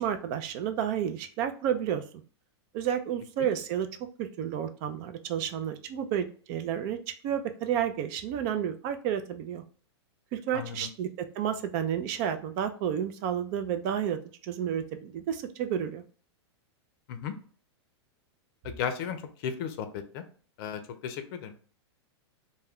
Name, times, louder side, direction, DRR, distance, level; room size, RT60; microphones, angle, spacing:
voice 1, 0.0-2.0 2.7-3.9 4.2-7.0 7.2-9.6 10.3-11.1 11.4-16.0, right 9 dB, 45° right, 8 dB, 0.4 m, -31 dB
voice 2, 10.5-10.9 17.1-17.3 18.6-20.2 20.6-21.5, left 7 dB, 55° left, 8 dB, 0.5 m, -35 dB
2.2 x 2.2 x 3.5 m, 0.42 s
hypercardioid pair, 125°, 15 cm